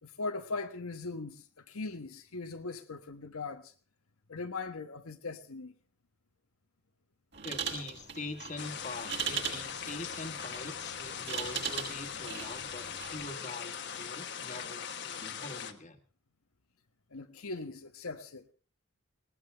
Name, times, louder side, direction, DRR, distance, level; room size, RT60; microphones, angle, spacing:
voice 1, 0.0-3.7 4.3-5.7 17.1-18.5, left 3 dB, 85° left, 1.3 m, -40 dB
sound 1, 7.3-13.2, right 7 dB, 55° right, 6.7 m, -39 dB
voice 2, 7.4-16.0, left 2 dB, 35° left, 1.7 m, -44 dB
sound 2, 8.6-15.7, left 7 dB, 55° left, 1.4 m, -41 dB
19.5 x 18.5 x 3.5 m
head